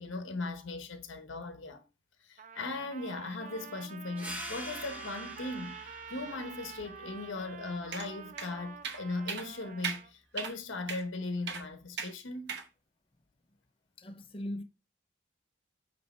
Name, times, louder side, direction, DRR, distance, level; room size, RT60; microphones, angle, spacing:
voice 1, 0.0-1.8 2.2-12.6, left 2 dB, 75° left, 0.9 m, -38 dB
Trumpet, 2.4-10.1, right 7 dB, 40° right, 0.4 m, -48 dB
sound 1, 4.2-9.3, equal, 5° right, 0.8 m, -47 dB
sound 2, 7.9-8.1 8.4-8.5 8.8-9.0 9.3-9.5 9.8-10.0 10.4-10.5 10.9-11.0 11.5-11.6 12.0-12.1 12.5-12.7, right 6 dB, 60° right, 0.9 m, -37 dB
voice 2, 14.0-14.6, left 1 dB, 30° left, 0.7 m, -39 dB
8.2 x 3.3 x 4.3 m
head